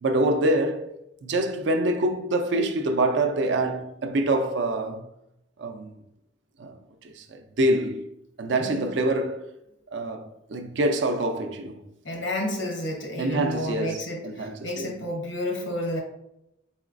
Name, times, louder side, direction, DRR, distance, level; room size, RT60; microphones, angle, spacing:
voice 1, 0.0-1.0 1.2-5.1 5.6-5.9 6.6-8.1 8.4-9.5 9.9-11.8 13.2-14.9, right 1 dB, 65° right, 0.5 m, -26 dB
voice 2, 12.0-16.0, left 1 dB, 90° left, 1.1 m, -31 dB
4.2 x 3.8 x 2.5 m
head